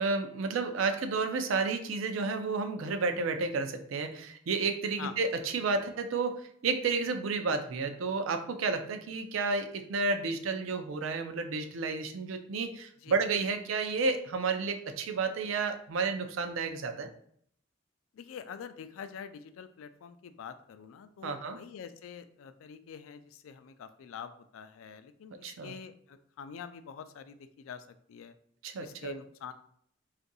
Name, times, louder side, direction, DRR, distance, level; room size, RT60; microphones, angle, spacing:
voice 1, 0.0-17.1 21.2-21.6 25.4-25.7 28.6-29.1, right 4 dB, 80° right, 7 dB, 0.4 m, -31 dB
voice 2, 18.1-28.3 28.8-29.5, left 7 dB, 85° left, 11 dB, 0.3 m, -46 dB
2.6 x 2.5 x 3.9 m, 0.64 s
head